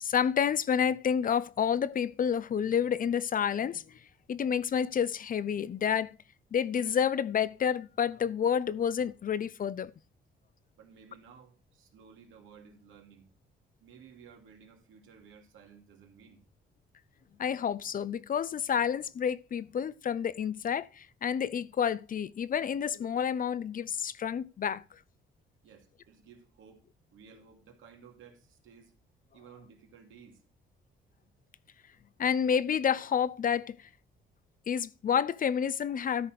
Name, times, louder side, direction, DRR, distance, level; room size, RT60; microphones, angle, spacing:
voice 1, 0.0-4.0 4.3-6.2 6.5-9.9 17.4-24.8 32.2-33.9 34.7-36.3, left 8 dB, 45° left, 0.7 m, -29 dB
voice 2, 10.8-13.3 13.8-16.4 25.6-26.8 27.1-28.9 29.3-30.4, right 6 dB, 80° right, 2.7 m, -55 dB
13.0 x 5.1 x 5.9 m
cardioid pair, 90°, 20 cm